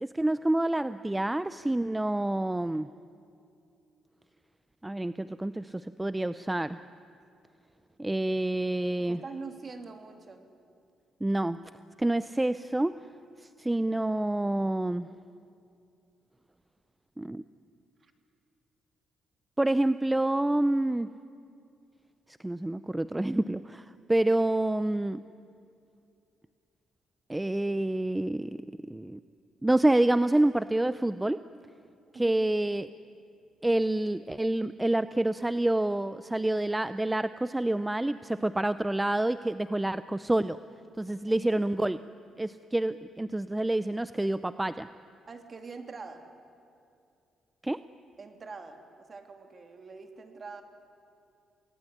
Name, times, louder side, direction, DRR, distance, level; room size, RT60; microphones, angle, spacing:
voice 1, 0.0-2.9 4.8-6.8 8.0-9.2 11.2-11.6 12.0-13.0 13.4-15.1 17.2-17.4 19.6-21.1 22.4-25.2 27.3-28.6 28.9-29.2 29.6-31.4 32.2-32.9 33.6-40.6 41.0-42.0 42.4-44.9 47.6-47.8, right 1 dB, 10° right, 14 dB, 0.6 m, -28 dB
voice 2, 9.0-10.4 18.0-18.1 32.1-32.4 41.1-41.2 45.3-46.2 48.2-50.6, right 4 dB, 40° right, 6 dB, 3.1 m, -44 dB
28.0 x 19.5 x 9.9 m, 2.5 s
cardioid pair, 90°, 0 cm